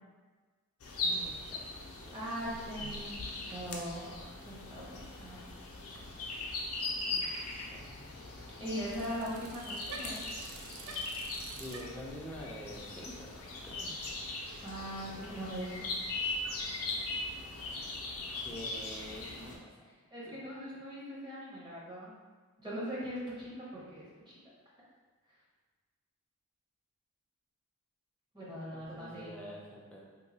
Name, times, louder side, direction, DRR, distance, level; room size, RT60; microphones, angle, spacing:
sound 1, 0.8-19.5, left 2 dB, 70° left, 0.5 m, -40 dB
voice 1, 1.0-2.2 7.1-7.4 7.7-8.0 11.5-14.0 18.3-19.8 20.2-20.4 28.7-30.0, equal, 5° left, -4 dB, 0.4 m, -47 dB
voice 2, 2.1-5.4 8.6-10.3 14.6-15.9 19.3-19.5 20.1-22.2 22.6-24.4 28.3-29.4, equal, 20° right, -7 dB, 0.8 m, -41 dB
Bicycle, 2.4-11.8, right 3 dB, 65° right, 0.4 m, -52 dB
2.9 x 2.3 x 3.9 m, 1.4 s
head